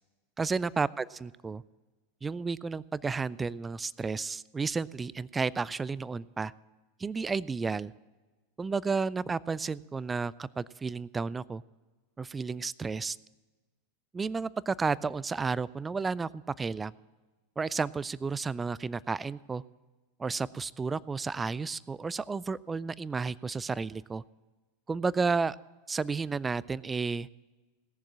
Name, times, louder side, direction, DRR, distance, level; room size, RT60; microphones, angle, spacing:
voice 1, 0.4-1.6 2.2-6.5 7.0-7.9 8.6-11.6 12.2-13.2 14.1-16.9 17.6-19.6 20.2-24.2 24.9-25.6 25.9-27.3, right 4 dB, 15° right, 21 dB, 0.3 m, -32 dB
17.0 x 7.2 x 7.4 m, 1.2 s
figure-of-eight pair, 90°, 0 cm